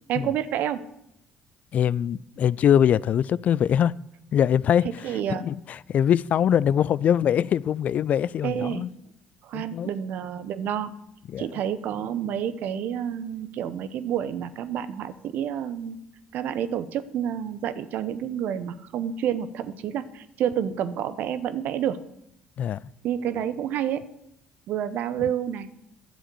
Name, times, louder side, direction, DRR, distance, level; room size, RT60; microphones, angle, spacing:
voice 1, 0.1-0.8 5.0-5.5 8.4-8.8 9.4-10.9 11.4-16.0 16.3-22.0 23.0-24.0 24.7-25.7, right 9 dB, 60° right, 0.8 m, -29 dB
voice 2, 1.7-3.9 4.3-8.9 9.5-9.9 11.3-11.5 22.6-22.8, left 9 dB, 50° left, 0.3 m, -23 dB
11.0 x 7.4 x 6.8 m
hypercardioid pair, 55°, 3 cm